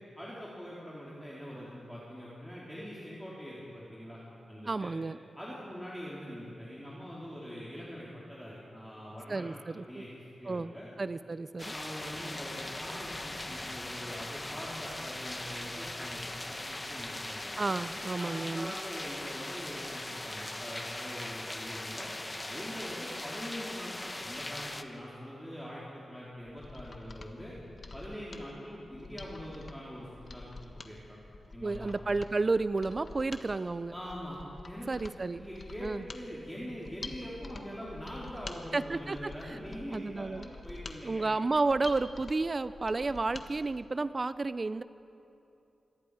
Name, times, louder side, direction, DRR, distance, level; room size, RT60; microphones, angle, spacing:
voice 1, 0.2-4.2 4.5-4.9 5.4-9.5 9.9-10.1 10.4-10.9 11.7-17.5 18.2-22.1 22.4-27.5 27.9-31.2 31.5-32.2 33.9-34.4 34.7-34.9 35.4-41.3, equal, ahead, -7 dB, 3.7 m, -43 dB
voice 2, 4.7-5.2 9.3-10.1 10.5-10.7 11.0-11.7 17.6-18.7 31.6-33.9 34.9-35.5 35.8-36.0 38.7-39.3 39.9-40.5 41.0-44.8, right 3 dB, 35° right, 14 dB, 0.4 m, -31 dB
sound 1, 11.6-24.8, left 1 dB, 20° left, 1.0 m, -40 dB
Mechanisms, 26.4-43.5 43.8-43.9, left 3 dB, 45° left, 1.5 m, -47 dB
26.5 x 20.5 x 4.9 m, 2.8 s
wide cardioid pair, 90°, 0 cm